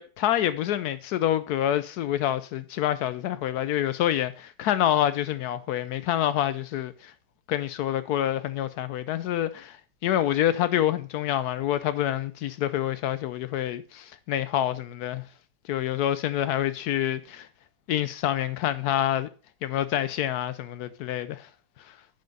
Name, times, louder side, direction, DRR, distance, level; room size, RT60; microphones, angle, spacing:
voice 1, 0.0-7.1 7.5-15.2 15.6-17.5 17.9-19.3 19.6-21.5 21.8-21.9, left 12 dB, 90° left, 0.8 m, -27 dB
10.5 x 5.8 x 5.3 m
omnidirectional pair, 2.3 m